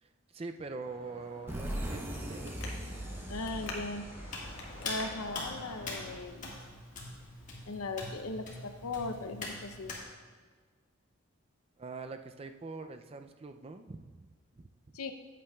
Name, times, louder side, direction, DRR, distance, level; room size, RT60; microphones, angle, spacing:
voice 1, 0.0-2.7 11.8-15.0, right 3 dB, 25° right, 7 dB, 0.4 m, -44 dB
Traffic noise roadway noise, 0.8-6.2, left 2 dB, 65° left, 1.5 m, -47 dB
sound 1, 1.5-7.0, right 1 dB, 10° right, 0.8 m, -41 dB
voice 2, 3.3-4.1 4.8-6.6 7.7-10.0 14.9-15.1, left 3 dB, 90° left, 8 dB, 0.7 m, -38 dB
Hands, 4.3-10.0, left 2 dB, 35° left, 1.7 m, -43 dB
14.0 x 8.4 x 2.3 m, 1.5 s
head